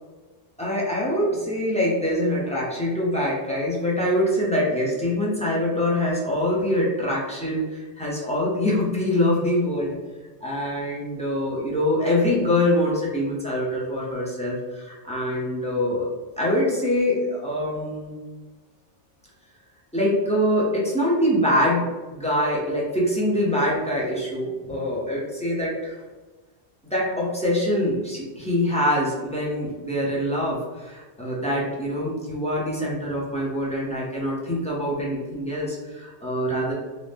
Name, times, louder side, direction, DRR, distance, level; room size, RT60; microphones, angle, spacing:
voice 1, 0.6-10.0 10.4-16.1 16.4-18.2 19.9-26.0 26.8-36.7, left 1 dB, 10° left, -6 dB, 0.3 m, -24 dB
2.6 x 2.1 x 3.4 m, 1.3 s
omnidirectional pair, 1.2 m